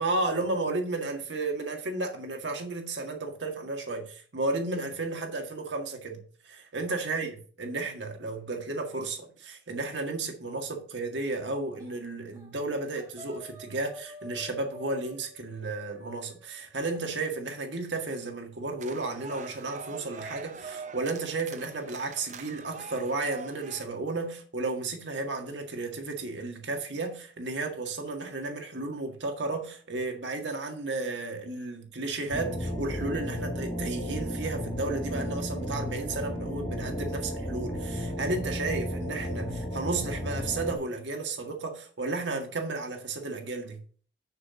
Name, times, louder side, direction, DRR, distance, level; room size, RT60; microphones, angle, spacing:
voice 1, 0.0-43.8, right 3 dB, 85° right, 1.8 m, -33 dB
sound 1, 11.8-12.0 12.3-12.7 12.9-17.0, right 1 dB, 20° right, 3.6 m, -48 dB
sound 2, 18.8-23.8, right 4 dB, 40° right, 0.7 m, -44 dB
sound 3, 32.3-40.8, equal, 55° left, 3.3 m, -33 dB
6.5 x 5.9 x 6.2 m
head